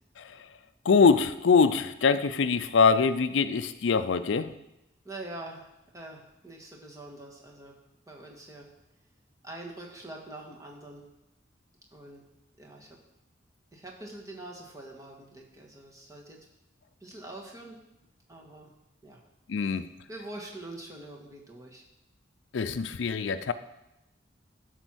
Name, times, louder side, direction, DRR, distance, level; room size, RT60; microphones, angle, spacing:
voice 1, 0.8-4.5 19.5-19.9 22.5-23.5, left 5 dB, 80° left, 12 dB, 0.5 m, -23 dB
voice 2, 5.0-5.7 5.9-7.8 8.1-8.7 9.4-11.0 11.9-12.2 12.6-13.0 13.7-16.4 17.0-17.8 18.3-18.7 19.0-19.2 19.6-19.8 20.1-21.8, right 2 dB, 20° right, -1 dB, 1.5 m, -44 dB
12.0 x 4.5 x 6.3 m, 0.90 s
head